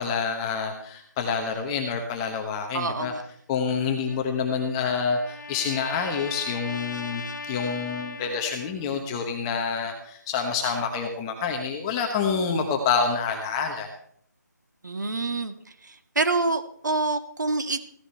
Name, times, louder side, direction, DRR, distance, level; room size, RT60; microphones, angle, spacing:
voice 1, 0.0-3.1 3.5-13.9, left 5 dB, 15° left, 3 dB, 1.1 m, -27 dB
voice 2, 2.7-3.2 14.8-15.5 15.8-17.8, right 3 dB, 70° right, 8 dB, 1.7 m, -27 dB
Trumpet, 4.1-8.9, left 4 dB, 80° left, 1.6 m, -39 dB
16.0 x 14.0 x 4.3 m, 0.64 s
figure-of-eight pair, 160°, 10 cm